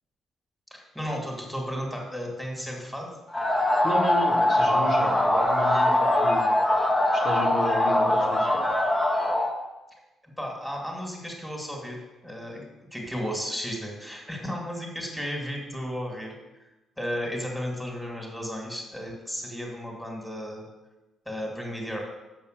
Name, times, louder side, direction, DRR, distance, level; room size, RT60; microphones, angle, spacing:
voice 1, 0.7-3.1 10.4-12.6 12.9-16.3 17.0-20.7 21.3-22.0, equal, ahead, 0 dB, 2.6 m, -34 dB
sound 1, 3.3-9.5, left 1 dB, 30° left, 1.7 m, -22 dB
voice 2, 3.8-5.9 6.2-6.4 7.1-8.6, left 1 dB, 70° left, -4 dB, 2.2 m, -32 dB
7.1 x 5.4 x 6.8 m, 1.0 s
supercardioid pair, 70°, 0 cm